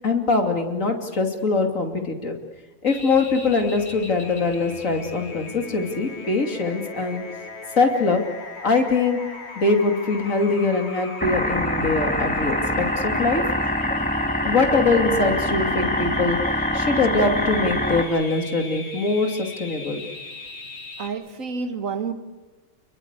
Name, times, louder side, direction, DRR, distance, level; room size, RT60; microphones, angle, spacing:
voice 1, 0.0-2.4 2.8-7.2 7.8-8.2 8.6-9.2 9.6-13.4 14.4-20.0, left 3 dB, 70° left, 4 dB, 3.2 m, -22 dB
sound 1, 2.9-21.1, left 3 dB, 50° left, 2.4 m, -38 dB
sound 2, 11.2-18.0, left 1 dB, 5° left, 1.9 m, -24 dB
voice 2, 13.9-14.5 20.0-20.3 21.0-22.1, right 5 dB, 70° right, 9 dB, 2.0 m, -31 dB
29.5 x 22.0 x 8.2 m, 1.1 s
omnidirectional pair, 1.4 m